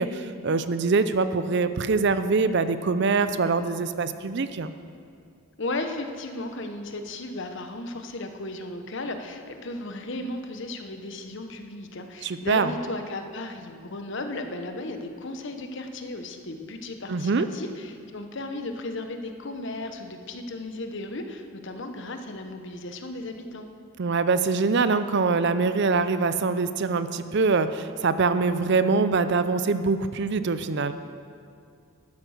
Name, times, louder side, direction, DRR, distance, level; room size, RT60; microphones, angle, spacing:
voice 1, 0.0-4.7 12.2-12.7 17.1-17.5 24.0-30.9, right 4 dB, 50° right, 12 dB, 0.5 m, -24 dB
voice 2, 5.6-23.7, left 2 dB, 55° left, 6 dB, 1.0 m, -35 dB
12.0 x 9.6 x 6.4 m, 2.3 s
head